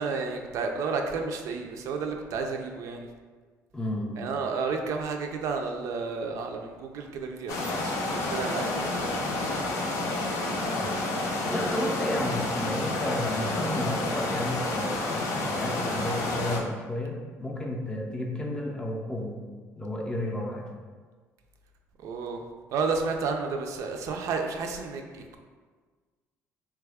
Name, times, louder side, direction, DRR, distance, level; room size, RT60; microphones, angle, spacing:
voice 1, 0.0-3.1 4.2-9.5 22.0-22.4 22.7-25.4, right 4 dB, 70° right, 3 dB, 0.4 m, -32 dB
voice 2, 3.7-4.2 10.7-11.0 11.5-19.4 19.8-20.7, left 1 dB, 15° left, 0 dB, 0.4 m, -32 dB
sound 1, 7.5-16.6, left 2 dB, 70° left, 0.5 m, -29 dB
3.2 x 2.3 x 3.4 m, 1.5 s
cardioid pair, 120°, 6 cm